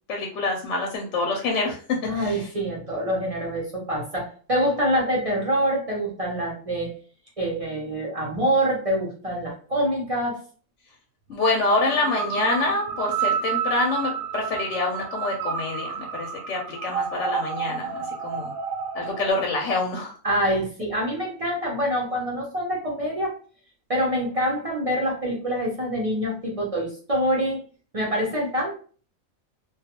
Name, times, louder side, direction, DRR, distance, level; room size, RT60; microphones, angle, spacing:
voice 1, 0.1-1.8 2.1-2.5 11.3-18.5 18.9-20.2, left 2 dB, 65° left, 0 dB, 0.8 m, -26 dB
voice 2, 2.0-6.9 7.4-10.4 20.2-23.3 23.9-27.6 27.9-28.7, equal, 50° right, -3 dB, 0.4 m, -25 dB
sound 1, 11.8-19.3, right 7 dB, 90° right, 1.0 m, -30 dB
2.3 x 2.2 x 2.8 m, 0.41 s
omnidirectional pair, 1.4 m